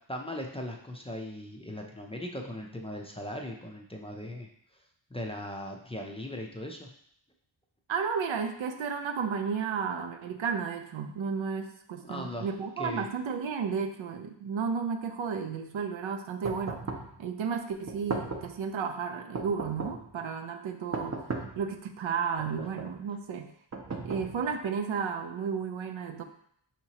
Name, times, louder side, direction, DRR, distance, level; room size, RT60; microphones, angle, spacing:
voice 1, 0.1-4.5 5.1-6.9 11.9-12.5 12.8-13.1, left 1 dB, 15° left, 1 dB, 0.4 m, -38 dB
voice 2, 7.9-16.8 17.2-21.3 21.6-23.5 24.0-26.2, right 6 dB, 80° right, 5 dB, 0.6 m, -33 dB
sound 1, 16.4-17.2 17.9-18.6 19.3-20.1 20.9-21.7 22.4-23.0 23.7-24.6, right 3 dB, 35° right, 0.6 m, -37 dB
5.7 x 2.9 x 2.8 m, 0.68 s
wide cardioid pair, 95°, 46 cm